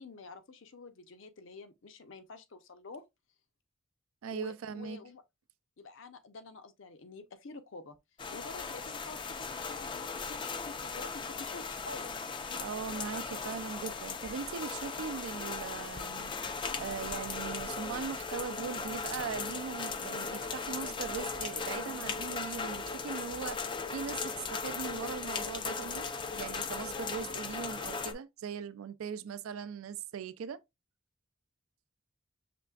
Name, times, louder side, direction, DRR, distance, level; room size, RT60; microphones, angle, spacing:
voice 1, 0.0-3.0 4.3-5.2 5.8-8.0 8.3-12.3, left 3 dB, 70° left, 0.6 m, -48 dB
voice 2, 4.2-5.0 12.5-26.1 26.3-30.6, right 6 dB, 85° right, 0.4 m, -40 dB
sound 1, 8.2-28.1, left 4 dB, 25° left, 0.3 m, -38 dB
6.0 x 3.3 x 2.3 m
head